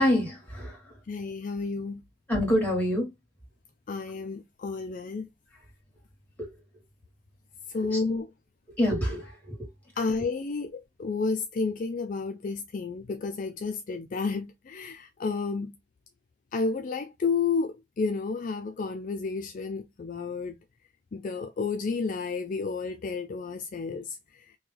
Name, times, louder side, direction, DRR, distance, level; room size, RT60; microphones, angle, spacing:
voice 1, 0.0-1.0 2.3-3.1 7.9-8.0 8.8-9.6, left 1 dB, 10° left, 2.1 m, -26 dB
voice 2, 1.1-2.0 3.9-5.3 7.7-8.3 10.0-15.7 16.5-20.6 21.1-24.2, left 4 dB, 45° left, 0.4 m, -31 dB
3.1 x 2.9 x 3.6 m
head